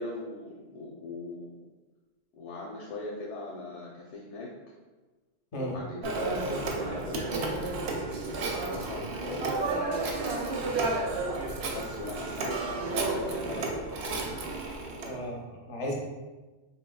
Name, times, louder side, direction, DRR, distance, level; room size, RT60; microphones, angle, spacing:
voice 1, 0.0-1.5 2.3-4.5 5.5-7.3 8.6-9.7 11.7-13.9, left 2 dB, 85° left, -2 dB, 0.9 m, -39 dB
Telephone, 6.0-15.1, right 3 dB, 70° right, 0.8 m, -32 dB
voice 2, 15.0-15.9, equal, 35° left, -2 dB, 0.6 m, -35 dB
3.6 x 2.8 x 2.3 m, 1.2 s
omnidirectional pair, 1.2 m